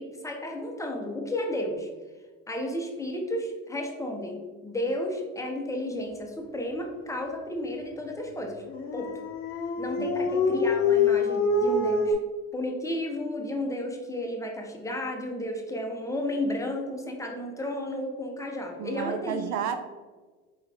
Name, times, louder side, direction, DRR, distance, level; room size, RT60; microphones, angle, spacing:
voice 1, 0.0-1.9 2.5-8.6 8.9-9.1 9.8-12.2 12.5-19.4, left 1 dB, 10° left, 1 dB, 0.7 m, -32 dB
Dog, 8.7-12.1, left 4 dB, 40° left, 0.7 m, -25 dB
voice 2, 18.8-19.8, right 8 dB, 55° right, 8 dB, 0.5 m, -31 dB
4.6 x 3.2 x 3.4 m, 1.3 s
supercardioid pair, 105°, 35 cm